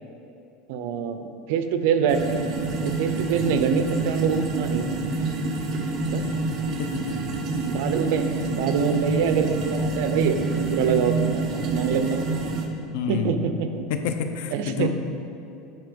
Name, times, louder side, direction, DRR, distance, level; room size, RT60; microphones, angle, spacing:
voice 1, 0.7-2.4 2.8-4.9 6.0-6.3 7.6-12.3 13.1-13.8 14.5-14.9, right 6 dB, 70° right, 8 dB, 0.6 m, -25 dB
sound 1, 2.1-12.7, right 3 dB, 40° right, 1.0 m, -27 dB
voice 2, 6.8-7.2 12.9-13.3 13.9-14.9, left 7 dB, 75° left, 7 dB, 0.7 m, -28 dB
9.6 x 4.7 x 5.2 m, 2.8 s
supercardioid pair, 140°, 0 cm